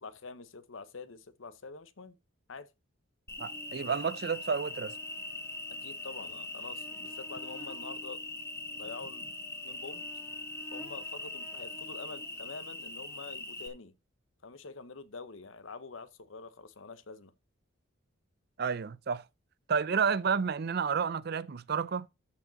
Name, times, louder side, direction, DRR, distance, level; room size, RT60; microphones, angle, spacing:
voice 1, 0.0-2.2 2.5-2.7 5.8-8.2 8.7-9.3 9.6-10.0 10.7-13.9 14.4-17.3, left 4 dB, 75° left, 0.9 m, -46 dB
Cricket, 3.3-13.7, left 2 dB, 15° left, 1.1 m, -41 dB
voice 2, 3.4-5.0 18.6-19.2 19.7-22.1, right 6 dB, 50° right, 0.5 m, -30 dB
13.5 x 4.8 x 4.0 m
head